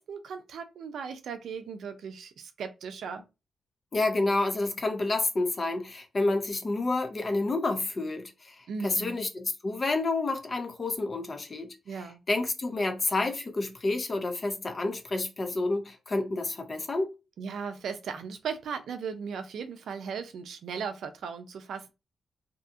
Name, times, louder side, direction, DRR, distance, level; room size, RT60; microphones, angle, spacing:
voice 1, 0.0-3.2 8.7-9.2 11.9-12.2 17.4-21.9, right 6 dB, 85° right, 0.4 m, -37 dB
voice 2, 3.9-11.7 12.3-17.1, left 2 dB, 40° left, 0.7 m, -29 dB
2.7 x 2.4 x 2.6 m
cardioid pair, 80°, 0 cm